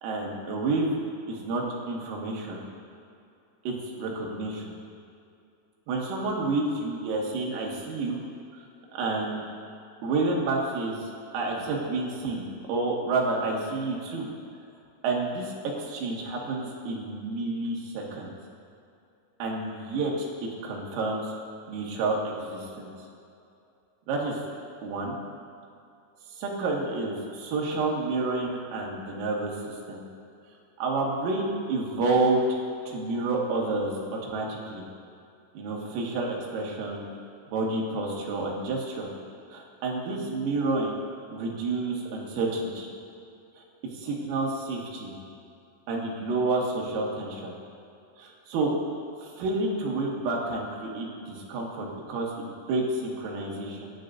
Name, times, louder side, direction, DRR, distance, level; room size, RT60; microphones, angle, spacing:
voice 1, 0.0-1.0 1.3-2.7 3.7-4.7 5.9-8.2 8.9-9.4 10.0-14.3 15.0-18.3 19.4-20.3 20.6-21.3 21.7-22.9 24.1-24.4 24.8-25.2 26.4-30.0 30.8-32.5 32.9-34.8 35.5-37.1 37.5-39.1 39.5-41.0 41.3-43.0 43.9-45.1 45.9-47.5 48.2-48.7 49.2-53.9, right 3 dB, 90° right, -2 dB, 4.6 m, -29 dB
25.5 x 11.5 x 2.6 m, 2.5 s
omnidirectional pair, 5.8 m